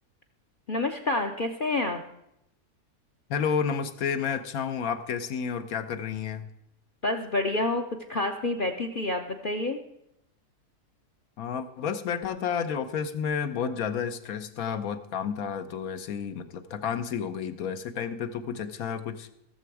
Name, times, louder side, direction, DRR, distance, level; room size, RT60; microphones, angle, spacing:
voice 1, 0.7-2.0 7.0-9.8, left 2 dB, 45° left, 6 dB, 0.7 m, -28 dB
voice 2, 3.3-6.5 11.4-19.3, left 7 dB, 70° left, 9 dB, 1.1 m, -31 dB
16.5 x 6.9 x 4.7 m, 0.80 s
omnidirectional pair, 1.7 m